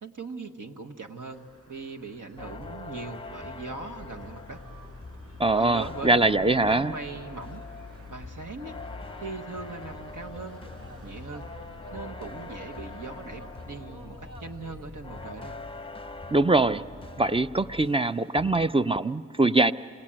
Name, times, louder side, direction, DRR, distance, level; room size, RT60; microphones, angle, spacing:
voice 1, 0.0-4.6 5.5-7.6 8.1-8.8 9.2-10.6 11.0-11.5 11.9-15.6, right 3 dB, 70° right, 2 dB, 1.4 m, -40 dB
sound 1, 1.3-13.9, equal, 45° right, 7.6 m, -54 dB
sound 2, 2.4-18.1 18.4-18.8, left 3 dB, 15° left, 0.7 m, -43 dB
sound 3, 2.9-17.5, equal, 90° right, 2.3 m, -51 dB
voice 2, 5.4-6.9 16.3-16.8 17.2-19.7, right 2 dB, 15° right, 12 dB, 0.5 m, -22 dB
27.5 x 19.0 x 8.8 m, 2.3 s
cardioid pair, 50°, 32 cm